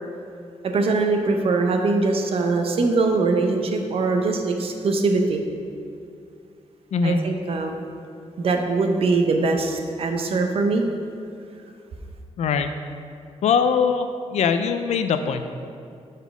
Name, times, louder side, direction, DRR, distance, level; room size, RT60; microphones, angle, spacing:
voice 1, 0.6-5.4 7.0-7.7 8.4-10.8, right 3 dB, 55° right, 4 dB, 0.6 m, -22 dB
voice 2, 12.4-12.7 13.4-14.1 14.3-15.4, left 6 dB, 70° left, 8 dB, 0.4 m, -21 dB
5.5 x 4.0 x 6.0 m, 2.4 s
wide cardioid pair, 170°, 12 cm